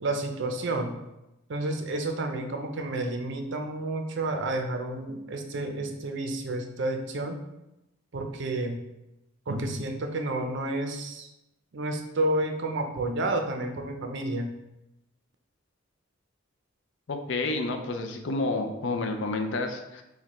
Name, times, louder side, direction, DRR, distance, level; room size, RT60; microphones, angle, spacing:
voice 1, 0.0-0.9 1.5-7.4 8.1-8.8 9.5-11.3 11.7-14.5, right 2 dB, 65° right, 5 dB, 0.5 m, -30 dB
voice 2, 17.1-20.0, left 2 dB, 65° left, 5 dB, 0.5 m, -30 dB
4.7 x 2.2 x 4.1 m, 0.93 s
head